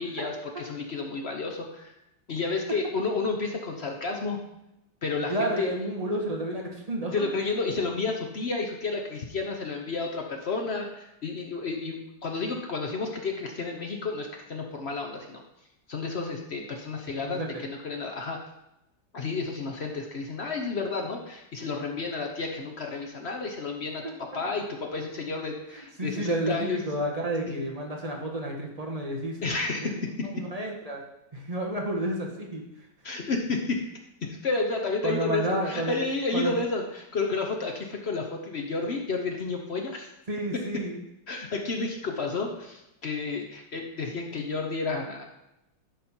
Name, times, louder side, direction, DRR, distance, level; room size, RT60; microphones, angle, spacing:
voice 1, 0.0-1.9 2.3-4.4 5.0-5.7 7.1-15.4 15.9-18.4 19.1-26.8 27.5-27.6 29.4-30.3 33.0-33.8 34.2-40.1 41.3-45.3, left 3 dB, 55° left, 2 dB, 0.7 m, -31 dB
voice 2, 5.3-7.2 17.2-17.6 24.0-24.1 25.7-29.4 29.8-30.0 30.3-31.0 31.3-32.6 35.0-36.0 36.3-36.5 40.3-41.0, right 1 dB, 25° right, 0 dB, 1.2 m, -31 dB
11.0 x 4.3 x 4.3 m, 0.88 s
omnidirectional pair, 2.1 m